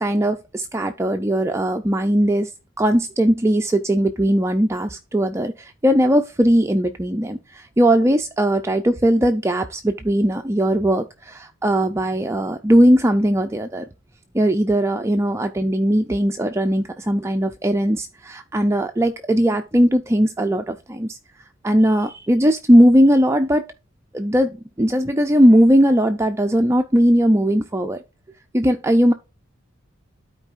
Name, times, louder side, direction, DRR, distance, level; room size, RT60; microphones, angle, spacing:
voice 1, 0.0-2.5 2.8-13.8 14.3-21.2 21.6-23.6 24.1-24.5 24.8-28.0 28.5-29.1, equal, 15° right, 0.4 m, -18 dB
13.0 x 4.5 x 2.5 m
head